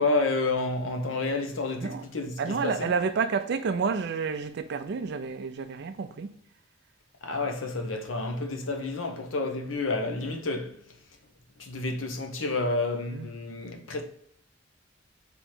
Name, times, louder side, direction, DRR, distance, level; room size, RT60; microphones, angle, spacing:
voice 1, 0.0-2.9 7.2-10.8 11.6-14.0, left 2 dB, 80° left, 0.8 m, -30 dB
voice 2, 2.4-6.3 13.1-13.3, right 5 dB, 60° right, 0.4 m, -29 dB
3.5 x 3.1 x 4.3 m
head